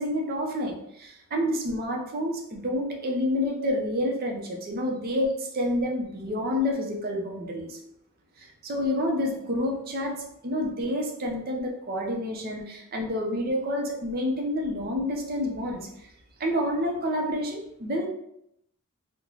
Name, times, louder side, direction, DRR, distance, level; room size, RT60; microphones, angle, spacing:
voice 1, 0.0-7.8 8.4-16.1 16.4-18.1, left 1 dB, 45° right, 1 dB, 0.6 m, -29 dB
3.8 x 2.2 x 3.0 m, 0.78 s
head